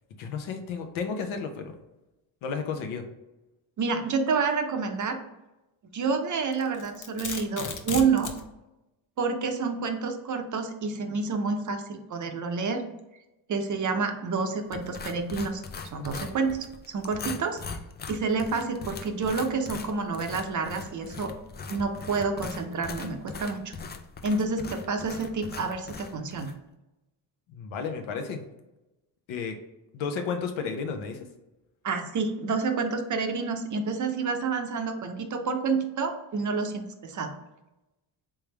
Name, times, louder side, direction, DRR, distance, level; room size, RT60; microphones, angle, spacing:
voice 1, 0.2-1.7 2.4-3.0 27.5-28.4 29.3-29.6 29.9-31.3, left 5 dB, 80° left, 5 dB, 0.9 m, -32 dB
voice 2, 3.8-5.2 5.9-8.3 9.2-12.8 13.5-15.6 15.9-16.6 16.9-17.6 18.1-21.3 21.7-23.7 24.2-26.5 31.8-37.4, right 4 dB, 40° right, 6 dB, 0.7 m, -28 dB
Domestic sounds home sounds, 6.5-8.4, left 6 dB, 40° left, 0.7 m, -35 dB
sound 1, 14.7-26.6, left 5 dB, 25° left, 0.3 m, -41 dB
3.6 x 3.4 x 3.2 m, 0.97 s
cardioid pair, 85°, 47 cm